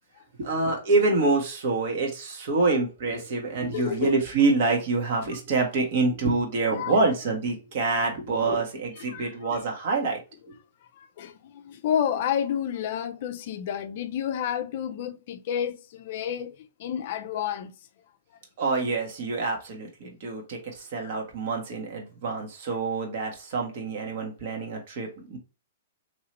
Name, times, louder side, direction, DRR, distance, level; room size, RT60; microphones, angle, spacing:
voice 1, 0.4-10.2 10.5-10.6 18.6-25.4, right 3 dB, 55° right, 1.3 m, -26 dB
voice 2, 3.7-4.2 6.8-6.9 8.5-8.7 9.0-9.6 10.9-17.7 21.0-21.2, left 9 dB, 55° left, 0.4 m, -30 dB
2.9 x 2.8 x 3.0 m
hypercardioid pair, 125°, 0 cm